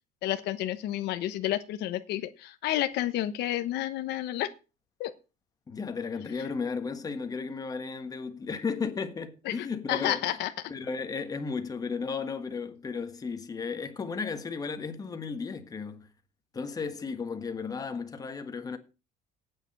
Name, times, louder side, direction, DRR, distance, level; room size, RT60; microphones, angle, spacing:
voice 1, 0.2-4.5 5.0-5.1 9.4-10.5, left 13 dB, 70° left, 1.1 m, -30 dB
voice 2, 5.7-10.3 10.7-16.1 16.5-18.8, left 5 dB, 20° left, 1.5 m, -34 dB
8.9 x 7.1 x 8.8 m
cardioid pair, 160°, 18 cm